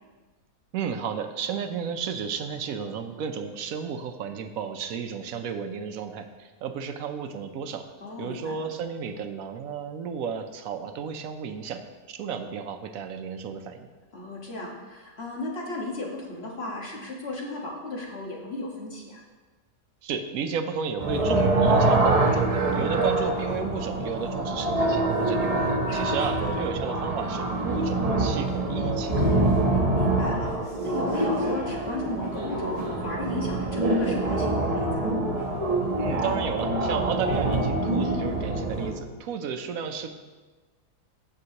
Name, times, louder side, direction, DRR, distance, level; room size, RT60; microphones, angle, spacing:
voice 1, 0.7-7.9 8.2-11.8 12.1-13.9 20.0-29.5 36.0-40.1, right 7 dB, 75° right, 7 dB, 1.1 m, -33 dB
voice 2, 8.0-8.7 14.1-19.2 22.8-23.3 25.9-26.5 29.7-35.2, left 2 dB, 45° left, -2 dB, 1.7 m, -35 dB
sound 1, 21.0-38.9, right 2 dB, 30° right, 0.9 m, -25 dB
14.0 x 6.1 x 2.9 m, 1.3 s
omnidirectional pair, 1.5 m